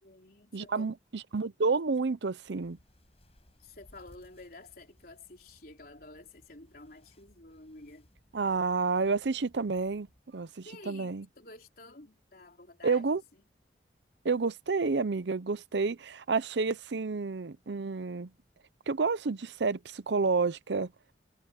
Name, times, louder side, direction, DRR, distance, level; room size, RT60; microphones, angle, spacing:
voice 1, 0.0-0.9 3.6-8.1 8.5-8.6 10.6-13.0 13.3-13.4, left 2 dB, 55° left, 4.0 m, -51 dB
voice 2, 0.5-2.8 8.3-10.1 10.3-11.3 12.8-13.2 14.2-18.3 18.9-20.9, right 4 dB, 70° right, 0.6 m, -30 dB
sound 1, 2.5-10.2, equal, 35° left, 7.4 m, -63 dB
head